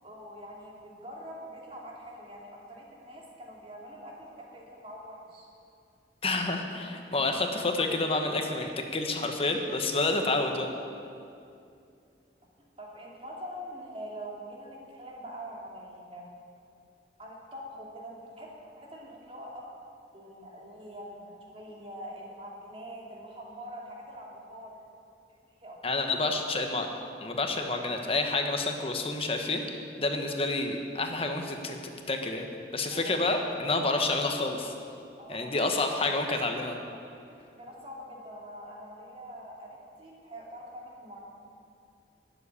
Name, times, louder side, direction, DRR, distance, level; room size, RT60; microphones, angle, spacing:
voice 1, 0.0-5.5 12.8-16.3 17.2-19.7 20.1-24.8 25.6-25.8 32.9-33.1 35.2-35.6 37.5-41.2, equal, 35° right, -3 dB, 2.6 m, -44 dB
voice 2, 6.2-10.7 25.8-26.9 27.2-32.5 32.7-34.7 35.3-36.8, left 2 dB, 35° left, 4 dB, 1.2 m, -29 dB
12.0 x 7.9 x 9.9 m, 2.5 s
head